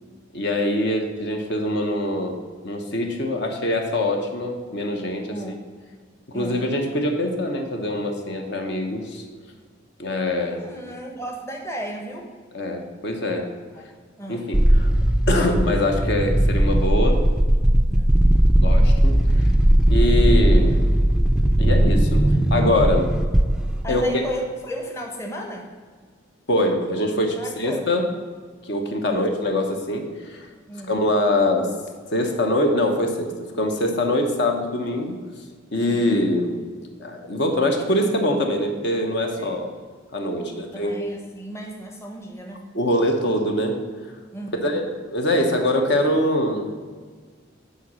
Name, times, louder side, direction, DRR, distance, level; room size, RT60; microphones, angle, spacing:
voice 1, 0.3-5.4 6.3-9.2 10.0-10.6 12.5-13.5 14.3-14.9 15.3-17.2 18.6-19.2 19.9-20.9 21.6-22.2 22.5-23.1 23.9-24.0 26.5-28.1 28.6-30.5 30.9-31.7 32.1-35.2 35.7-36.5 37.0-39.7 40.1-41.0 42.7-43.8 44.6-46.7, left 1 dB, 60° left, 3 dB, 1.0 m, -23 dB
voice 2, 5.3-5.6 6.3-6.7 10.4-12.3 13.7-13.8 14.2-14.5 17.9-18.2 23.8-25.7 27.4-27.9 29.1-29.3 30.7-31.0 35.8-36.2 39.4-39.6 40.3-42.6 44.3-44.8, equal, 15° left, 2 dB, 0.8 m, -34 dB
sound 1, 14.5-23.9, right 1 dB, 5° right, 0.4 m, -18 dB
9.2 x 4.1 x 6.1 m, 1.5 s
head